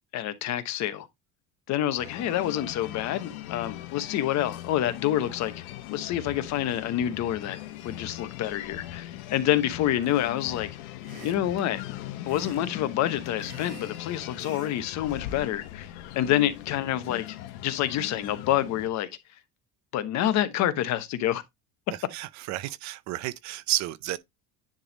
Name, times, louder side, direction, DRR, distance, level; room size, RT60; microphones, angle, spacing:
voice 1, 0.1-1.1 1.7-5.6 5.9-7.6 7.8-10.7 11.2-11.8 12.3-17.4 17.6-19.1 19.9-21.4, left 12 dB, 45° left, 0.9 m, -27 dB
sound 1, 2.0-18.9, left 13 dB, 75° left, 1.2 m, -40 dB
sound 2, 10.0-10.4 11.0-11.7 12.3-12.7 13.0-14.0 14.4-14.8 15.1-15.3, right 6 dB, 80° right, 2.3 m, -48 dB
voice 2, 21.9-24.2, right 15 dB, 50° right, 0.5 m, -32 dB
10.0 x 3.5 x 3.9 m
cardioid pair, 170°, 37 cm